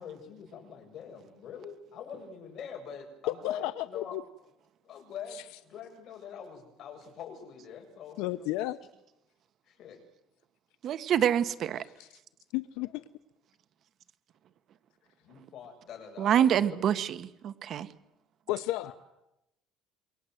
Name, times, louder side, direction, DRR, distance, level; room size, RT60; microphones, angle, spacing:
voice 1, 0.0-4.2 4.8-8.5 9.7-10.0 12.8-13.0 15.2-16.9 18.8-18.9, left 7 dB, 45° left, 3 dB, 7.8 m, -44 dB
voice 2, 3.3-4.2 5.3-5.4 8.2-8.8 11.8-12.1 12.5-13.0 18.5-18.9, left 16 dB, 80° left, 12 dB, 0.9 m, -33 dB
voice 3, 10.8-11.8 16.2-17.2 17.4-17.9, right 9 dB, 45° right, 12 dB, 1.4 m, -26 dB
27.5 x 24.5 x 8.0 m, 0.87 s
cardioid pair, 145°, 0 cm